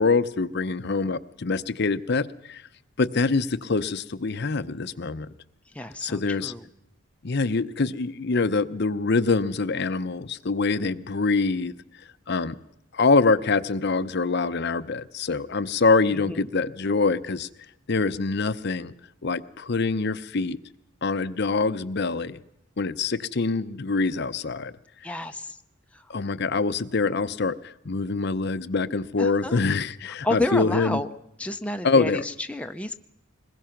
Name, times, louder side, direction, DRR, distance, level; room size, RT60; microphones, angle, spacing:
voice 1, 0.0-2.6 3.0-5.3 6.0-6.5 7.2-11.7 12.3-12.5 12.9-17.5 17.9-18.9 19.2-20.6 21.0-22.4 22.8-24.7 26.1-31.0 31.8-32.2, left 4 dB, 50° left, 12 dB, 0.7 m, -25 dB
voice 2, 5.7-6.7 16.1-16.5 25.0-25.6 25.9-26.1 29.2-29.6 30.2-31.1 31.4-33.0, left 2 dB, 5° left, 6 dB, 0.7 m, -30 dB
22.0 x 21.0 x 5.9 m, 0.82 s
head